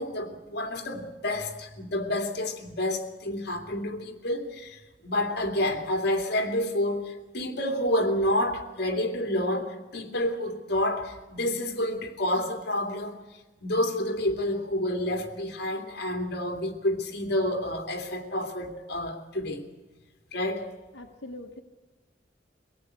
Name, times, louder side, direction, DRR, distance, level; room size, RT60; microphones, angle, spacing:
voice 1, 0.0-13.2 13.6-19.7 20.3-20.7, left 1 dB, 60° left, 4 dB, 2.7 m, -29 dB
voice 2, 20.9-21.6, left 1 dB, 85° left, 2 dB, 1.3 m, -42 dB
23.0 x 17.0 x 8.4 m, 1.2 s
head